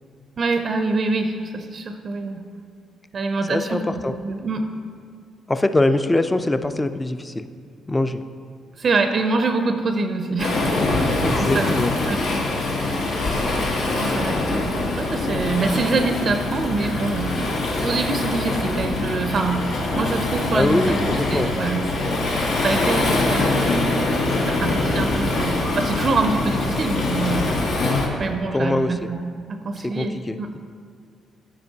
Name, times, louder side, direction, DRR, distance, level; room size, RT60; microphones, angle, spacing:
voice 1, 0.4-2.4 3.1-4.7 8.8-11.8 12.1-12.3 13.9-17.5 17.8-19.7 20.0-22.3 22.6-23.7 24.4-27.4 28.2-30.5, right 3 dB, 45° right, 6 dB, 0.4 m, -25 dB
voice 2, 3.5-4.2 5.5-7.5 7.9-8.2 11.2-11.9 20.5-21.5 28.5-29.1 29.9-30.4, left 2 dB, 15° left, 11 dB, 0.3 m, -22 dB
Waves surf, 10.4-28.1, left 2 dB, 80° left, 1.3 m, -23 dB
12.5 x 5.0 x 2.8 m, 2.1 s
cardioid pair, 90°, 0 cm